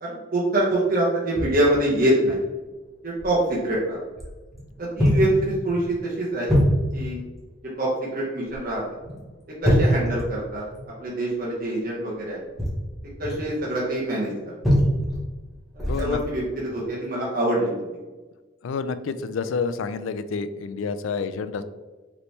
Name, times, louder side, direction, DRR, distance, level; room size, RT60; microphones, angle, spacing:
voice 1, 0.0-2.4 3.0-4.0 4.8-6.5 6.9-7.2 7.8-8.8 9.6-10.6 11.0-12.4 13.2-14.3 15.8-17.7, right 1 dB, 45° right, -6 dB, 0.9 m, -24 dB
sound 1, 1.3-1.6 2.2-2.3 3.2-3.4 4.1-4.7 5.0-5.4 5.7-6.0 6.5-7.2 8.4-8.7 9.0-9.2 9.6-10.8 12.4-13.4 14.6-15.3 15.8-16.2 16.7-16.9, equal, ahead, 1.1 m, -23 dB
voice 2, 15.9-16.2 18.6-21.6, left 5 dB, 80° left, 12 dB, 0.3 m, -29 dB
5.2 x 3.1 x 3.3 m, 1.3 s
head